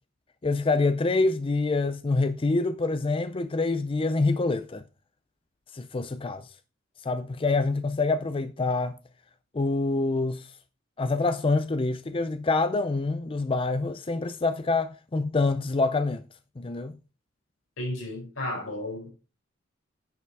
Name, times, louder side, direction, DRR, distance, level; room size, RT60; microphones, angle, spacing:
voice 1, 0.4-4.8 5.7-6.5 7.0-8.9 9.5-10.5 11.0-16.2 16.6-17.0, left 3 dB, 25° left, 0.4 m, -26 dB
voice 2, 17.8-19.1, left 1 dB, 85° left, 4.7 m, -33 dB
9.3 x 5.9 x 4.6 m
head